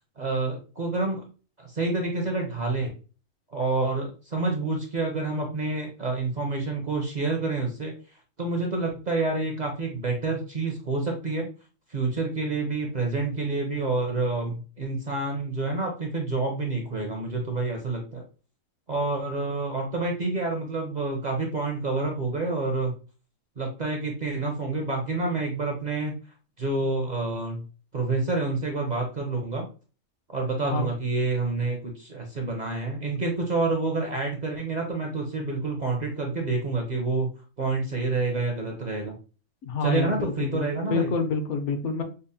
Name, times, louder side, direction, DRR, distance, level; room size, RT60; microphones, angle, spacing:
voice 1, 0.2-1.2 1.6-2.9 3.5-7.9 8.4-11.5 11.9-18.2 18.9-22.9 23.6-26.2 26.6-27.6 27.9-29.7 30.3-37.3 37.6-39.2 39.8-41.1, right 3 dB, 50° right, 1 dB, 0.6 m, -28 dB
voice 2, 39.6-42.0, left 4 dB, 70° left, 6 dB, 0.9 m, -28 dB
5.2 x 2.1 x 2.7 m, 0.36 s
omnidirectional pair, 1.4 m